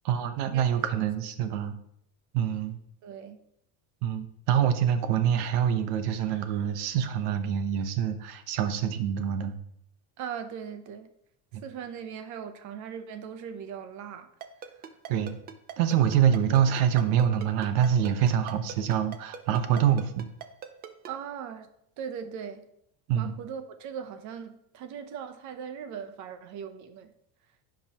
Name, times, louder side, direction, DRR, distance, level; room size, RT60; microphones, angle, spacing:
voice 1, 0.0-1.7 2.3-2.8 4.0-9.6 11.5-11.6 15.1-15.4 15.8-20.3 23.1-23.3, right 9 dB, 85° right, 1.1 m, -25 dB
voice 2, 3.0-3.4 10.2-11.1 11.6-14.3 14.7-14.9 21.1-21.7 22.0-22.7 23.1-27.1, right 7 dB, 40° right, 0.8 m, -39 dB
Ringtone, 14.4-21.1, right 8 dB, 25° right, 0.4 m, -40 dB
15.5 x 5.3 x 2.9 m
cardioid pair, 165°, 44 cm